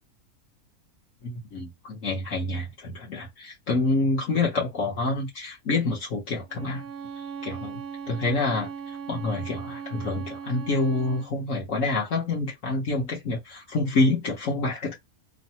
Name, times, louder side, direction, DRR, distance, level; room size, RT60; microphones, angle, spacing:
voice 1, 1.2-6.8 7.4-7.8 8.1-14.9, left 2 dB, 60° left, 1.3 m, -27 dB
Bowed string instrument, 6.5-11.3, right 7 dB, 60° right, 0.7 m, -38 dB
3.2 x 2.0 x 2.8 m
omnidirectional pair, 1.6 m